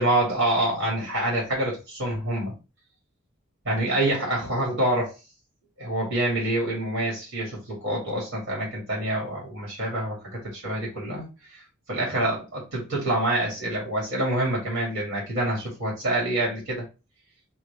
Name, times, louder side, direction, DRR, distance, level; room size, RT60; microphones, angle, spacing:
voice 1, 0.0-2.5 3.6-5.1 5.8-11.6 11.9-16.8, right 1 dB, 60° right, 2.6 m, -26 dB
4.7 x 2.7 x 3.6 m
head